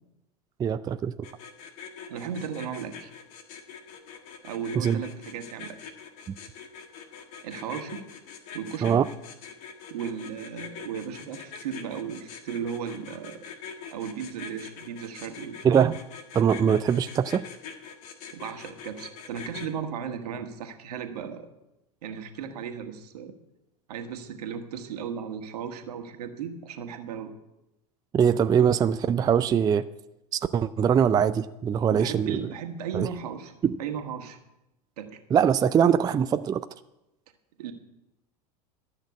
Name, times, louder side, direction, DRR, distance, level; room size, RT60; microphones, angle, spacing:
voice 1, 0.6-1.1 4.8-5.0 8.8-9.1 15.6-16.0 16.3-17.4 28.1-29.8 30.3-32.4 32.9-33.1 33.6-33.7 35.3-36.6, right 8 dB, 20° right, 12 dB, 0.4 m, -22 dB
sound 1, 1.2-19.7, left 7 dB, 60° left, 1.8 m, -43 dB
voice 2, 2.1-3.1 4.4-5.8 7.4-8.0 8.5-9.0 9.9-13.4 13.9-15.6 18.3-21.5 22.0-23.3 23.9-27.3 31.9-33.5 33.8-34.4 35.0-35.2 37.6-37.7, right 7 dB, 70° right, 6 dB, 1.6 m, -35 dB
13.0 x 6.5 x 8.3 m, 0.93 s
hypercardioid pair, 95°, 20 cm